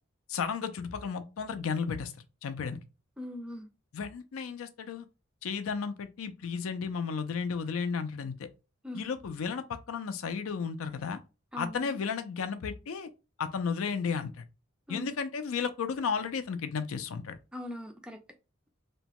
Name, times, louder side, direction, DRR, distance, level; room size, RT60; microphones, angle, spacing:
voice 1, 0.3-2.1 2.4-2.8 3.9-5.1 5.4-8.5 8.9-11.2 11.6-13.1 13.4-14.4 14.9-17.4, left 6 dB, 90° left, 0.4 m, -33 dB
voice 2, 3.2-3.7 8.8-9.1 11.5-12.0 14.9-15.2 17.5-18.2, left 1 dB, 5° right, 0.3 m, -40 dB
2.9 x 2.2 x 2.9 m
head